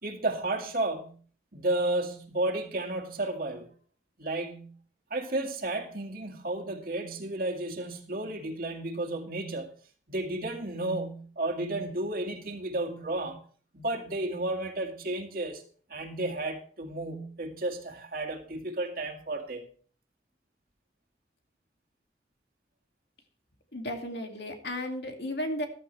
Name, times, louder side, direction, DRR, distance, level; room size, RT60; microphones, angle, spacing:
voice 1, 0.0-1.2 1.5-3.7 4.2-4.7 5.1-9.7 10.1-13.4 13.7-15.6 15.9-19.7, right 2 dB, 55° right, 4 dB, 2.2 m, -32 dB
voice 2, 23.7-25.7, left 1 dB, 75° left, 4 dB, 2.4 m, -34 dB
14.5 x 13.0 x 3.3 m, 0.43 s
head